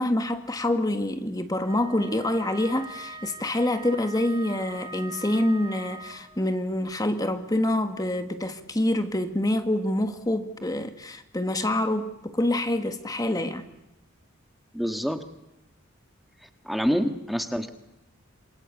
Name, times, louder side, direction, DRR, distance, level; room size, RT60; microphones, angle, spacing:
voice 1, 0.0-13.7, left 1 dB, 20° left, 1.5 m, -26 dB
Wind instrument woodwind instrument, 1.6-6.5, right 2 dB, 25° right, 1.3 m, -42 dB
voice 2, 14.7-15.2 16.4-17.7, equal, ahead, 1.6 m, -27 dB
27.5 x 26.0 x 8.3 m
head